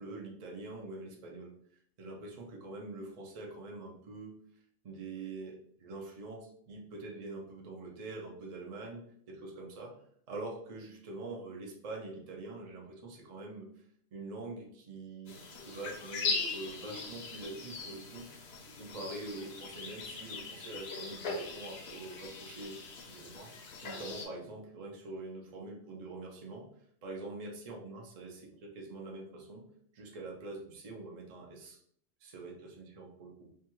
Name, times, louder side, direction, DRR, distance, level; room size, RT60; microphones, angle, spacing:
voice 1, 0.0-1.5 2.0-4.4 4.8-10.0 10.3-13.7 14.1-15.4 15.6-18.3 18.8-22.8 23.1-23.5 23.8-26.7 27.0-29.6 29.9-31.8 32.2-33.5, right 2 dB, 55° right, 0 dB, 0.4 m, -44 dB
sound 1, 15.3-24.3, left 4 dB, 60° left, 0.7 m, -40 dB
2.6 x 2.3 x 3.0 m, 0.64 s
omnidirectional pair, 1.4 m